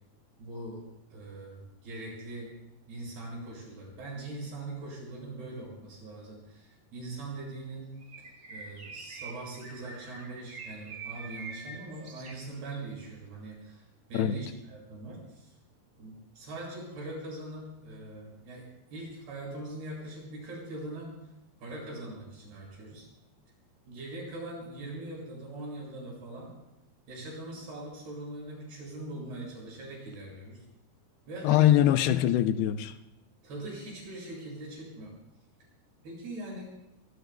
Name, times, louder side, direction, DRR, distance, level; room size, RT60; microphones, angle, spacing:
voice 1, 0.4-0.8 1.1-2.5 2.9-7.9 8.5-15.6 16.0-18.7 18.9-21.1 21.6-23.1 23.9-26.5 27.1-30.6 31.3-31.8 33.4-35.1 36.0-36.6, right 2 dB, 80° right, 8.8 m, -41 dB
Bird, 8.0-12.9, right 4 dB, 35° right, 2.1 m, -45 dB
voice 2, 31.4-33.0, left 12 dB, 85° left, 2.7 m, -23 dB
24.0 x 24.0 x 2.3 m
omnidirectional pair, 4.6 m